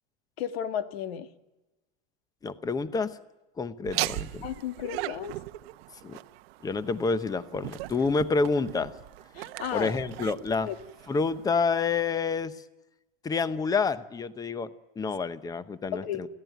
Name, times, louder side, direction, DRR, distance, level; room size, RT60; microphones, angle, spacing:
voice 1, 0.4-1.3 4.4-5.4 9.3-10.0 10.7-10.8 15.9-16.2, left 9 dB, 85° left, 9 dB, 1.8 m, -33 dB
voice 2, 2.4-3.2 3.6-4.5 6.0-6.2 6.6-8.9 9.7-10.7 11.1-12.5 13.2-16.3, left 4 dB, 10° left, 14 dB, 0.8 m, -28 dB
Laughter, 3.8-11.5, right 18 dB, 80° right, 0.8 m, -38 dB
21.5 x 16.0 x 9.2 m, 1.0 s
supercardioid pair, 150°, 30 cm